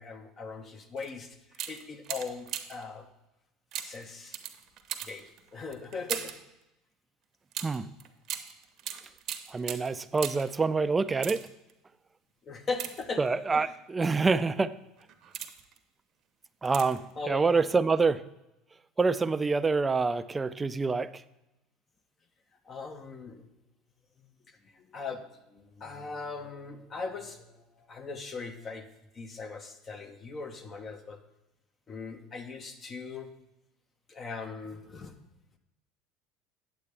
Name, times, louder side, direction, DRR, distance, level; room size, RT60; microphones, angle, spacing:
voice 1, 0.0-3.1 3.8-4.4 5.0-6.4 12.4-13.7 17.2-17.7 22.6-23.4 24.2-28.9 29.1-31.2 31.9-33.3 34.1-35.1, left 4 dB, 35° left, 6 dB, 0.9 m, -40 dB
sound 1, 1.0-1.1 1.5-2.9 3.7-6.5 7.5-10.6 11.1-11.7 12.7-13.5 14.2-14.4 15.0-15.8 16.7-17.1 17.4-17.5, right 10 dB, 55° right, 0.8 m, -39 dB
voice 2, 9.5-11.4 13.2-14.7 16.6-18.2 19.0-21.1, right 4 dB, 20° right, 14 dB, 0.4 m, -26 dB
8.4 x 8.2 x 3.4 m, 0.93 s
hypercardioid pair, 90°, 0 cm